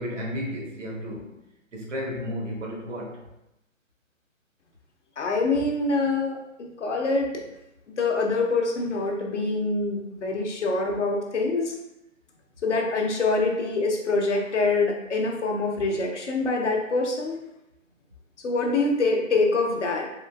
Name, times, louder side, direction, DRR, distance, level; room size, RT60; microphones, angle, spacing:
voice 1, 0.0-1.3 1.7-3.2, equal, 65° right, -2 dB, 1.1 m, -33 dB
voice 2, 5.2-7.3 8.0-11.8 12.6-17.4 18.4-20.1, left 3 dB, 60° left, 1 dB, 0.7 m, -25 dB
3.7 x 2.7 x 2.3 m, 0.86 s
hypercardioid pair, 160°, 41 cm